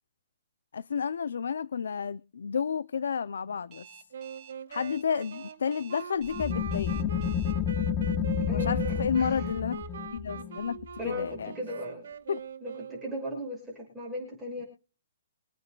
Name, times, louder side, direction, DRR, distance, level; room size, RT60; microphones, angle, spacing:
voice 1, 0.7-3.9 4.7-7.1 8.5-9.8 10.1-10.8 11.0-11.5 12.3-12.4, left 6 dB, 85° left, 0.4 m, -31 dB
Alarm, 3.7-7.5, right 11 dB, 25° right, 3.0 m, -51 dB
sound 1, 4.1-13.3, right 7 dB, 70° right, 2.5 m, -42 dB
sound 2, 6.2-11.6, left 8 dB, 20° left, 0.9 m, -30 dB
voice 2, 8.5-9.5 11.0-12.0 12.6-14.6, left 1 dB, 5° right, 6.1 m, -37 dB
25.0 x 9.1 x 2.3 m
hypercardioid pair, 155°, 0 cm